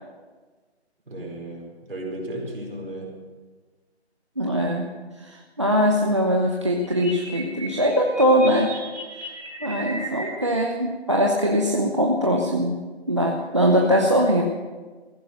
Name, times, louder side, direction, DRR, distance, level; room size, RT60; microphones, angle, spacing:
voice 1, 1.1-3.1, right 1 dB, 55° right, -1 dB, 4.7 m, -34 dB
voice 2, 4.4-4.9 5.3-8.7 9.6-12.8 13.1-14.4, equal, 25° right, 0 dB, 0.8 m, -21 dB
sound 1, 6.8-10.3, right 1 dB, 5° left, 5.6 m, -36 dB
15.0 x 11.0 x 6.5 m, 1.4 s
figure-of-eight pair, 175°, 33 cm